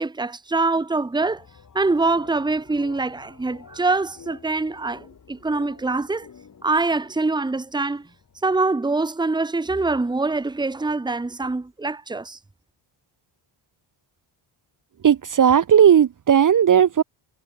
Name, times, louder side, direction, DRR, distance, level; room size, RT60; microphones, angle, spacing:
voice 1, 0.0-1.4 1.7-6.3 6.6-8.1 8.4-12.4, right 3 dB, 10° right, 1.1 m, -24 dB
sound 1, 1.2-8.7, left 6 dB, 40° left, 3.9 m, -49 dB
voice 2, 15.0-17.0, right 8 dB, 40° right, 0.9 m, -15 dB
wide cardioid pair, 145°, 47 cm